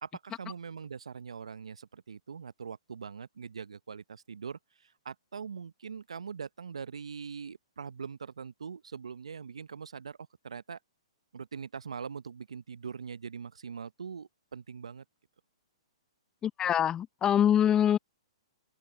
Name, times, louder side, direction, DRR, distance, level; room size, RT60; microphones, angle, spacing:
voice 1, 0.0-10.2 10.4-10.8 11.3-15.0, right 6 dB, 75° right, 1.1 m, -42 dB
voice 2, 16.4-18.0, left 9 dB, 20° left, 0.7 m, -24 dB
open air
figure-of-eight pair, 120°, 3 cm